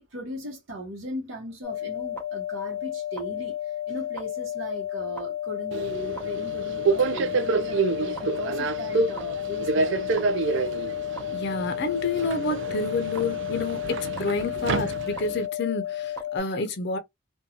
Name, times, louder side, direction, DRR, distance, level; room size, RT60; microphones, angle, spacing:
voice 1, 0.0-10.3, equal, 85° right, 0.9 m, -38 dB
sound 1, 1.6-16.4, left 11 dB, 10° left, 0.6 m, -32 dB
Subway metro underground, 5.7-15.5, right 4 dB, 65° right, 0.3 m, -28 dB
voice 2, 11.3-17.0, left 3 dB, 60° left, 0.6 m, -29 dB
2.6 x 2.2 x 2.8 m
head